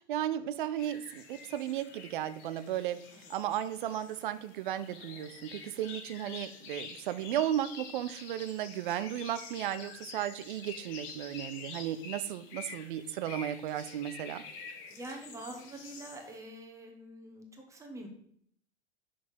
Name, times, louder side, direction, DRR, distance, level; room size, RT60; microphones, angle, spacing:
voice 1, 0.0-3.0 3.3-14.4, right 11 dB, 45° right, 13 dB, 0.5 m, -35 dB
sound 1, 0.8-16.4, left 5 dB, 35° left, 1.2 m, -48 dB
voice 2, 14.9-18.1, right 1 dB, 10° right, 1 dB, 1.2 m, -45 dB
6.2 x 4.6 x 5.5 m, 0.66 s
figure-of-eight pair, 95°, 35 cm